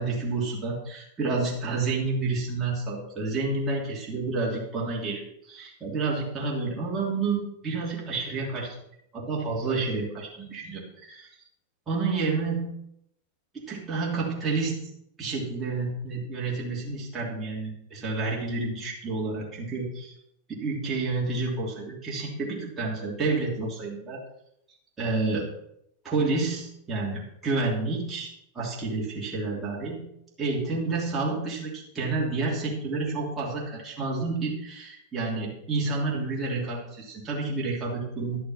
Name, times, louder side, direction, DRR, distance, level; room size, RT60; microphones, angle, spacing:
voice 1, 0.0-8.8 9.1-11.3 11.9-12.7 13.5-14.8 15.2-20.1 20.5-24.2 25.0-25.5 26.0-30.0 30.4-38.4, right 3 dB, 20° right, -4 dB, 3.2 m, -29 dB
11.5 x 6.7 x 5.7 m, 0.76 s
supercardioid pair, 135°, 0 cm